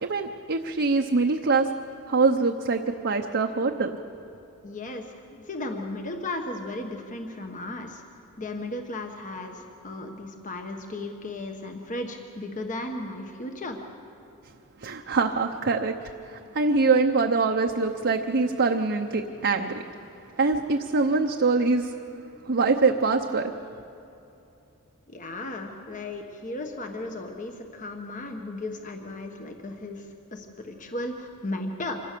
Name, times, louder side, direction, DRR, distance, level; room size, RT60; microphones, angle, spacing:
voice 1, 0.0-1.7 2.1-3.9 14.8-15.9 16.3-19.8 20.4-21.9 22.5-23.5, right 4 dB, 50° right, 3 dB, 0.8 m, -24 dB
voice 2, 4.6-8.0 8.4-13.8 25.1-32.0, left 2 dB, 35° left, 4 dB, 1.3 m, -35 dB
26.0 x 16.5 x 6.8 m, 2.8 s
head